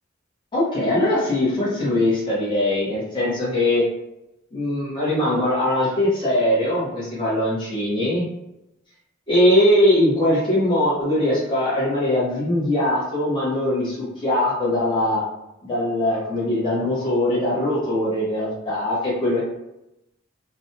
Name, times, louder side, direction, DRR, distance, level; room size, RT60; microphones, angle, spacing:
voice 1, 0.5-3.8 4.5-8.3 9.3-15.2 15.6-19.4, left 1 dB, 25° left, -8 dB, 1.0 m, -21 dB
2.5 x 2.2 x 2.7 m, 0.88 s
head